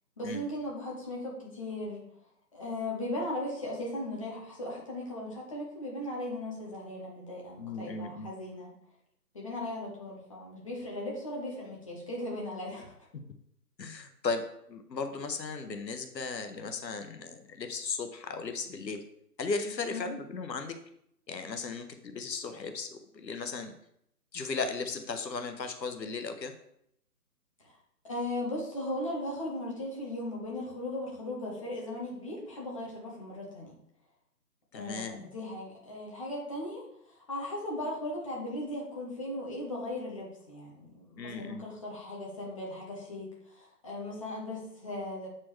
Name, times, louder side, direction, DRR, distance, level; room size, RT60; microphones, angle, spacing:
voice 1, 0.2-2.0 2.5-8.7 9.3-12.9 19.9-20.1 28.1-33.8 34.7-36.8 37.3-43.3 43.5-45.3, left 1 dB, 20° left, -4 dB, 0.9 m, -37 dB
voice 2, 7.6-8.3 13.1-13.2 13.8-19.0 19.4-20.8 21.3-23.7 24.3-26.5 34.7-35.3 41.2-41.7, left 4 dB, 90° left, 7 dB, 0.9 m, -36 dB
7.4 x 4.3 x 3.2 m, 0.74 s
figure-of-eight pair, 160°, 49 cm